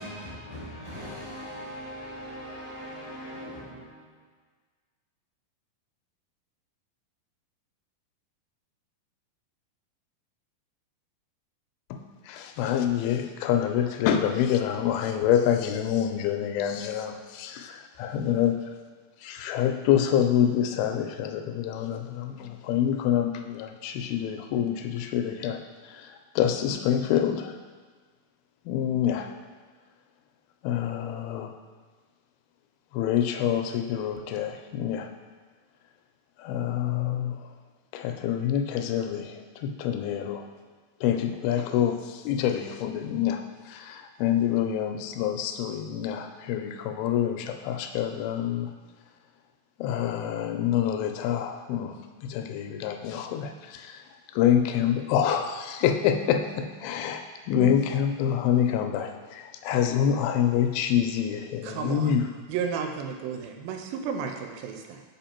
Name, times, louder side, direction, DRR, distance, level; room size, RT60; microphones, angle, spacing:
voice 1, 0.0-3.4, equal, 10° right, -9 dB, 0.5 m, -39 dB
voice 2, 12.3-18.6 19.2-27.6 28.7-29.3 30.6-31.5 32.9-35.1 36.4-37.5 37.9-40.4 41.0-43.4 43.7-48.7 49.8-52.0 52.2-54.0 54.3-62.3, left 9 dB, 85° left, 6 dB, 2.4 m, -26 dB
voice 3, 61.6-62.2 62.5-65.0, right 6 dB, 85° right, 4 dB, 2.4 m, -32 dB
5.4 x 5.2 x 4.4 m, 1.4 s
omnidirectional pair, 4.2 m